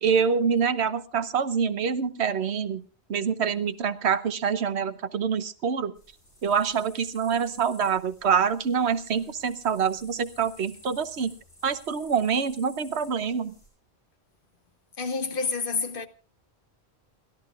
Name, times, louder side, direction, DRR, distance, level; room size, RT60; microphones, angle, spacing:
voice 1, 0.0-2.8 3.1-5.9 6.4-11.3 11.6-13.5, right 6 dB, 80° right, 1.2 m, -26 dB
Louka cvrcci-Meadow with crickets, 5.9-13.7, left 1 dB, 85° left, 7.8 m, -53 dB
voice 2, 15.0-16.1, left 5 dB, 55° left, 1.1 m, -28 dB
29.5 x 13.0 x 2.4 m
omnidirectional pair, 1.1 m